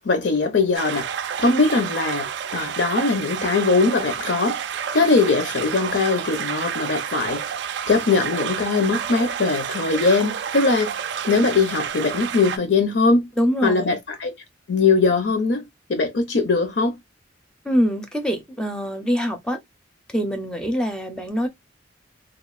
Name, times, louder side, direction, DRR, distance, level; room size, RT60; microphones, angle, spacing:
voice 1, 0.0-1.1 1.4-2.3 2.5-4.6 4.9-7.4 7.9-11.0 11.3-13.3 13.6-14.3 14.7-15.6 15.9-16.9, left 3 dB, 65° left, 0.6 m, -20 dB
sound 1, 0.7-12.6, right 8 dB, 60° right, 0.3 m, -29 dB
voice 2, 13.4-14.0 17.6-19.6 20.1-21.5, equal, 5° left, 0.5 m, -24 dB
3.0 x 2.3 x 2.3 m
head